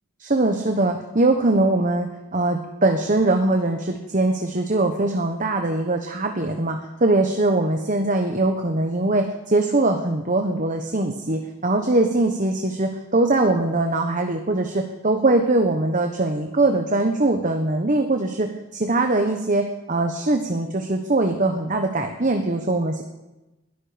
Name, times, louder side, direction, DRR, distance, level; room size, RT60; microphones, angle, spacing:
voice 1, 0.2-23.0, right 2 dB, 40° right, 5 dB, 1.2 m, -22 dB
21.0 x 13.0 x 5.2 m, 1.0 s
head